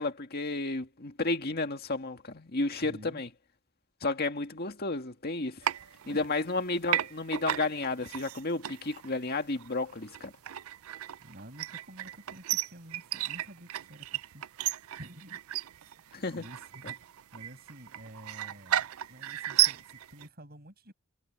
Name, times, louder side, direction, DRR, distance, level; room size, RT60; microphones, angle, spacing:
voice 1, 0.0-3.3 4.0-5.6 6.1-10.3 16.1-16.5, left 3 dB, 45° left, 2.0 m, -32 dB
voice 2, 2.8-3.2 6.0-6.3 11.2-15.4 16.3-17.1 17.3-20.9, equal, 45° right, 7.4 m, -50 dB
sound 1, 5.6-6.6 6.9-20.3, right 13 dB, 70° right, 0.4 m, -34 dB
head